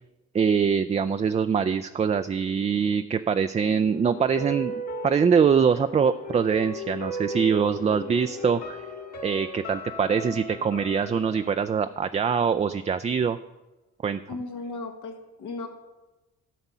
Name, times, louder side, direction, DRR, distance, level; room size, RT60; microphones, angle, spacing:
voice 1, 0.3-4.7 5.0-8.8 9.2-13.4 14.0-14.2, right 6 dB, 25° right, 9 dB, 0.3 m, -23 dB
sound 1, 3.6-12.5 12.9-13.0, equal, 60° left, 2.0 m, -37 dB
voice 2, 14.3-15.7, left 3 dB, 85° left, 3 dB, 1.6 m, -36 dB
13.5 x 5.9 x 5.5 m, 1.1 s
cardioid pair, 90°, 30 cm